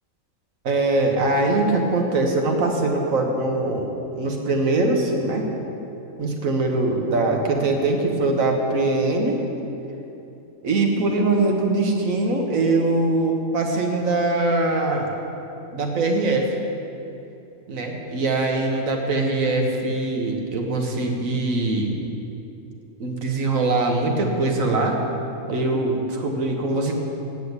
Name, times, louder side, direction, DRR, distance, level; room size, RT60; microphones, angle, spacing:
voice 1, 0.6-3.9 4.1-5.5 6.2-9.4 10.6-15.1 15.7-16.6 17.7-22.0 23.0-25.0 25.5-26.9, right 2 dB, 70° right, 2 dB, 1.6 m, -22 dB
9.1 x 7.3 x 8.0 m, 2.8 s
omnidirectional pair, 1.4 m